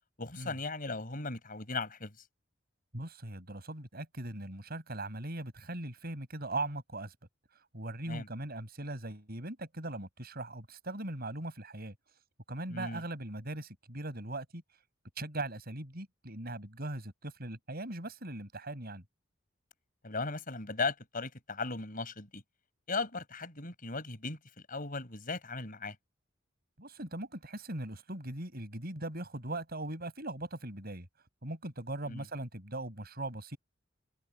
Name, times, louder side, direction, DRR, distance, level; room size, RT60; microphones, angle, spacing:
voice 1, 0.2-2.2 8.1-8.3 12.7-13.0 20.0-22.4 22.9-24.4 24.7-26.0 32.1-32.3, left 3 dB, 45° left, 5.9 m, -37 dB
voice 2, 2.9-7.1 7.5-11.9 12.5-14.6 15.2-19.0 26.8-31.1 31.4-33.6, right 2 dB, 50° right, 6.5 m, -40 dB
head